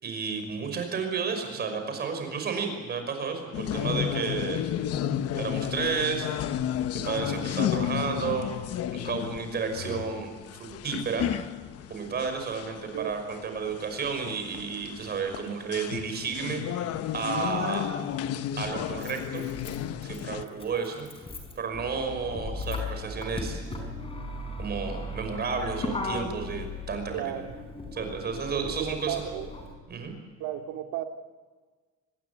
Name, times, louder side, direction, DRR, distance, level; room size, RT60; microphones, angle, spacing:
voice 1, 0.0-4.6 5.4-6.3 6.9-8.5 8.9-11.3 11.9-17.9 18.6-19.4 20.0-21.1 21.6-23.6 24.6-27.3 27.9-29.2 29.9-30.1, right 5 dB, 35° right, 6 dB, 5.7 m, -32 dB
sound 1, 3.5-20.5, left 10 dB, 55° left, 1.1 m, -32 dB
voice 2, 10.7-11.1 12.9-13.1 27.1-27.5 28.5-29.5 30.4-31.0, right 12 dB, 80° right, 5 dB, 2.4 m, -35 dB
Motor vehicle (road), 17.4-17.5 18.6-29.7, left 2 dB, 20° left, 5.1 m, -37 dB
26.0 x 20.5 x 8.6 m, 1.4 s
cardioid pair, 170°, 30 cm